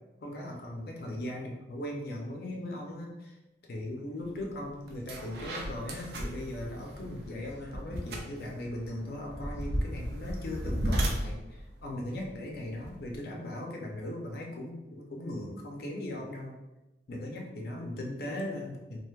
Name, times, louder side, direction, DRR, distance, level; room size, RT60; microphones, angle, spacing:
voice 1, 0.2-3.4 3.7-16.6 17.1-19.0, left 1 dB, 60° left, 0 dB, 0.5 m, -38 dB
sound 1, 4.4-4.5 4.9-13.2, equal, 65° right, 0.5 m, -35 dB
3.2 x 2.5 x 2.3 m, 1.0 s
head